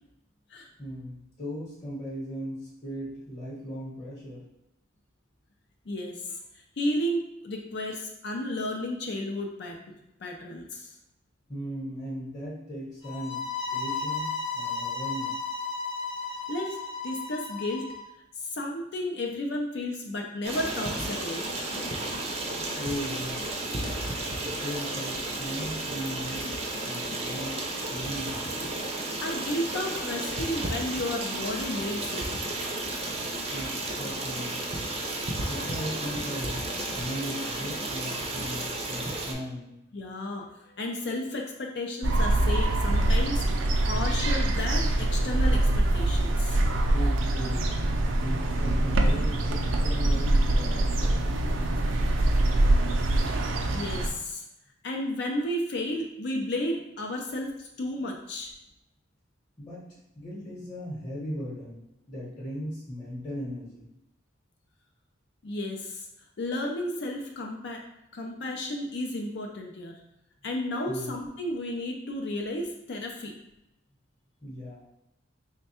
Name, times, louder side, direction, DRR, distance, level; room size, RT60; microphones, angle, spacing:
voice 1, 0.8-4.4 11.5-14.3 14.5-15.3 22.7-23.5 24.4-26.6 26.8-27.6 27.9-28.5 33.5-34.6 35.5-36.7 36.9-39.8 46.9-47.8 48.1-51.2 59.6-63.9 70.9-71.1 74.4-74.9, equal, 25° left, -7 dB, 1.0 m, -37 dB
voice 2, 5.9-6.4 6.8-9.8 10.2-10.9 16.5-17.9 18.4-21.7 29.2-32.3 39.9-43.4 43.9-46.6 53.7-54.4 54.8-58.5 65.4-66.1 66.4-67.8 68.1-70.0 70.4-73.3, left 1 dB, 60° left, 1 dB, 0.5 m, -33 dB
sound 1, 13.0-18.0, left 4 dB, 80° left, 0.8 m, -34 dB
Stream, 20.4-39.3, right 2 dB, 30° right, 0.5 m, -33 dB
sound 2, 42.0-54.1, right 1 dB, 80° right, 0.5 m, -24 dB
3.4 x 2.2 x 4.2 m, 0.86 s
head